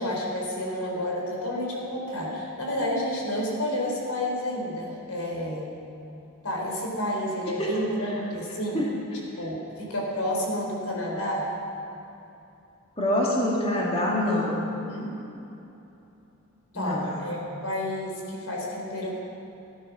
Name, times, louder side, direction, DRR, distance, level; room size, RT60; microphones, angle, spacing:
voice 1, 0.0-5.7 6.4-8.8 9.4-11.5 14.9-15.1 16.7-17.4 17.6-19.2, left 1 dB, 90° left, -2 dB, 3.8 m, -30 dB
voice 2, 7.6-8.1 8.7-8.9 13.0-14.6 16.7-17.2, left 1 dB, 25° left, -4 dB, 2.2 m, -26 dB
14.5 x 13.0 x 6.1 m, 2.9 s
head